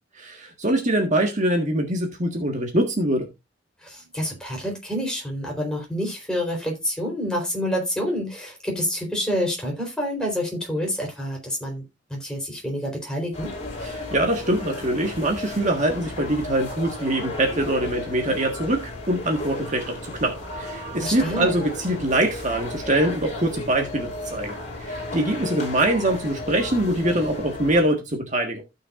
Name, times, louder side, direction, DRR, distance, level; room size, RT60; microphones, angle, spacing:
voice 1, 0.1-3.3 13.8-28.6, right 1 dB, 40° right, 1.6 m, -24 dB
voice 2, 3.8-11.8 12.1-13.5 21.0-21.5, equal, 5° left, 4.1 m, -28 dB
sound 1, 13.3-27.8, left 2 dB, 40° left, 3.6 m, -34 dB
15.5 x 6.5 x 2.5 m
head